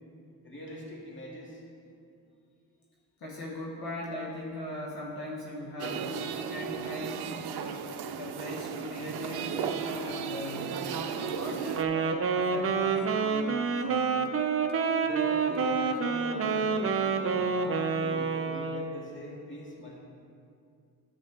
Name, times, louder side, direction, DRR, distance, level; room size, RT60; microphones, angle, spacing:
voice 1, 0.4-1.6 15.0-20.0, left 1 dB, 30° left, -4 dB, 1.9 m, -42 dB
voice 2, 3.2-7.8 8.1-10.8 11.1-14.1, left 1 dB, 70° left, -2 dB, 1.2 m, -39 dB
sound 1, 5.8-11.8, right 7 dB, 75° right, 0.6 m, -35 dB
Wind instrument woodwind instrument, 11.7-19.0, right 5 dB, 35° right, 0.6 m, -28 dB
9.8 x 7.5 x 3.3 m, 2.4 s
cardioid pair, 100°, 38 cm